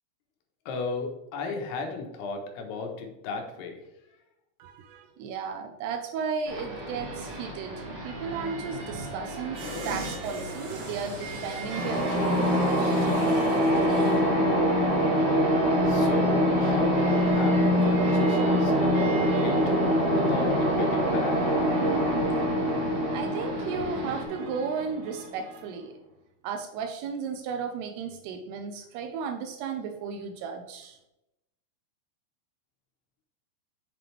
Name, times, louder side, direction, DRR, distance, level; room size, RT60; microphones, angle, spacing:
voice 1, 0.7-3.8 15.8-19.6 20.1-21.4, left 4 dB, 80° left, 3 dB, 3.2 m, -35 dB
voice 2, 4.6-13.3 22.6-25.9 26.4-31.0, right 5 dB, 80° right, 6 dB, 2.7 m, -35 dB
sound 1, 6.5-24.2, right 1 dB, 35° right, 1.7 m, -38 dB
sound 2, 9.6-14.3 14.7-14.8, equal, 55° right, 2.7 m, -40 dB
sound 3, 11.7-25.4, equal, 20° right, 1.4 m, -24 dB
7.7 x 7.3 x 3.4 m, 0.89 s
omnidirectional pair, 4.7 m